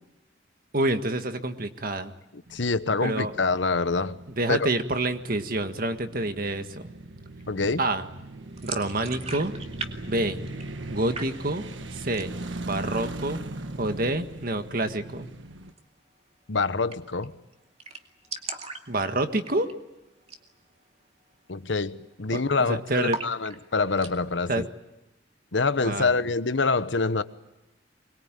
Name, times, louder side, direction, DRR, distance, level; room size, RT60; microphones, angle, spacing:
voice 1, 0.7-2.1 3.0-3.3 4.4-6.9 7.8-8.0 8.6-9.5 10.1-10.4 10.9-11.6 11.9-12.3 12.6-13.4 13.8-15.3 18.9-19.7 22.3-22.4 22.7-23.2 24.5-24.6 25.8-26.2, right 2 dB, 50° right, 8 dB, 1.7 m, -27 dB
voice 2, 2.5-4.2 4.5-4.7 7.5-7.8 16.5-17.3 21.5-24.7 25.5-27.2, left 4 dB, 75° left, 13 dB, 1.1 m, -26 dB
sound 1, 2.5-15.7, right 2 dB, 85° right, 1.5 m, -40 dB
sound 2, 8.6-9.9 10.2-10.9 11.1-11.7 12.0-12.6 12.9-13.0 13.3-14.0 15.7-15.8 16.1-16.2 16.5-16.6 16.9-17.3 17.5-17.6 17.8-19.9 20.2-20.5 20.8-20.9 21.5-21.7 22.0-22.6 23.1-24.1, right 4 dB, 35° right, 2.3 m, -38 dB
24.0 x 21.5 x 9.1 m, 0.96 s
head